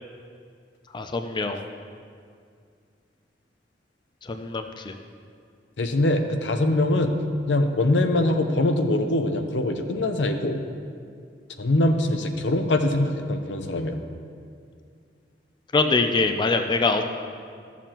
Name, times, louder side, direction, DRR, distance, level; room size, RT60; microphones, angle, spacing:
voice 1, 0.9-1.6 4.3-4.9 15.7-17.1, left 3 dB, 25° left, 6 dB, 0.4 m, -23 dB
voice 2, 5.8-7.1 7.5-10.6 11.6-14.0, left 1 dB, 85° left, 6 dB, 0.7 m, -23 dB
14.0 x 7.1 x 2.9 m, 2.2 s
head